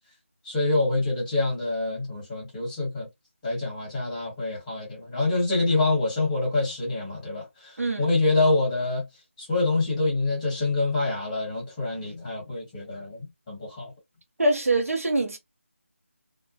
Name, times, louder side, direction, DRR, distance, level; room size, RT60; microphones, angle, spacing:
voice 1, 0.4-3.1 3.4-9.0 9.4-13.9, left 2 dB, 10° left, 1.0 m, -26 dB
voice 2, 7.8-8.1 14.4-15.4, right 2 dB, 80° right, 0.9 m, -24 dB
2.2 x 2.1 x 2.6 m
figure-of-eight pair, 170°, 8 cm